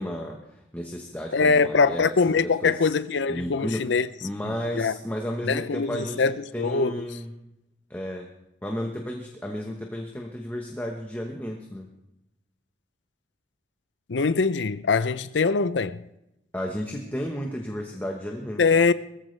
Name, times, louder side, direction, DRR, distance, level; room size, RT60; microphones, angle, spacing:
voice 1, 0.0-2.1 2.4-2.9 3.3-7.3 7.9-8.3 8.6-11.9 16.5-18.6, equal, 10° left, 1.1 m, -33 dB
voice 2, 1.3-4.1 4.7-4.9 5.4-7.0 14.1-16.0 18.6-18.9, left 4 dB, 80° left, 0.6 m, -23 dB
21.0 x 15.0 x 3.3 m
head